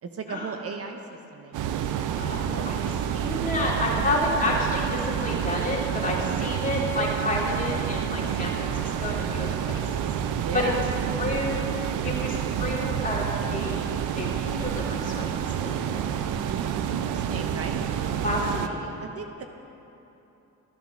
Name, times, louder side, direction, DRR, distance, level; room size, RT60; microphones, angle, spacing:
voice 1, 0.0-1.0 1.3-2.1 6.1-6.5 10.4-10.9 16.4-18.4 19.0-19.4, right 5 dB, 50° right, 5 dB, 1.0 m, -37 dB
sound 1, 1.5-18.7, right 9 dB, 85° right, 0.7 m, -29 dB
voice 2, 2.2-9.8 10.2-10.7 11.2-16.1 18.2-19.0, left 1 dB, 25° left, -3 dB, 2.7 m, -30 dB
12.0 x 8.9 x 6.2 m, 2.9 s
cardioid pair, 90°, 30 cm